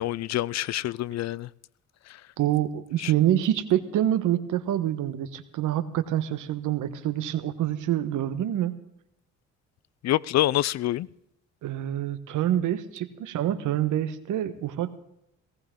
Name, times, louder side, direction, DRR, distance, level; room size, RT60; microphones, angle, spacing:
voice 1, 0.0-1.5 3.0-3.1 10.0-11.1, left 14 dB, 60° left, 0.5 m, -26 dB
voice 2, 2.4-8.7 11.6-15.0, right 12 dB, 85° right, 1.4 m, -26 dB
18.5 x 17.5 x 3.8 m
cardioid pair, 90°, 30 cm